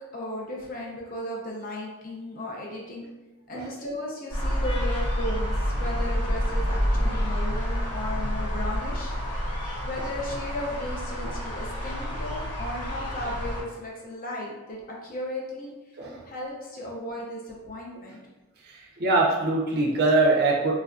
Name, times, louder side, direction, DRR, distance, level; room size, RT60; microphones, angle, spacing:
voice 1, 0.1-3.1 3.5-9.2 9.8-16.0 16.2-18.2, left 1 dB, 40° left, -3 dB, 0.6 m, -35 dB
sound 1, 4.3-13.6, equal, 80° left, 1.2 m, -28 dB
voice 2, 18.6-20.7, right 2 dB, 45° right, -1 dB, 0.5 m, -23 dB
3.3 x 2.5 x 2.3 m, 1.1 s
head